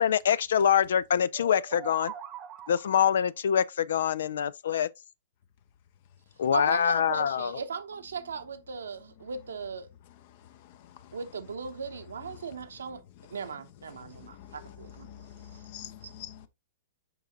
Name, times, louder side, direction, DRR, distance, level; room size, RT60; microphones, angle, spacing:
voice 1, 0.0-2.1 2.7-4.9 6.4-7.6, left 8 dB, 60° left, 0.4 m, -25 dB
sound 1, 1.3-3.2, right 9 dB, 30° right, 0.9 m, -43 dB
voice 2, 6.5-9.9 11.1-13.0 13.3-15.1 16.0-16.1, right 5 dB, 70° right, 0.9 m, -38 dB
voice 3, 13.9-16.5, left 10 dB, 45° left, 0.8 m, -46 dB
6.9 x 5.6 x 2.6 m
figure-of-eight pair, 105°, 0 cm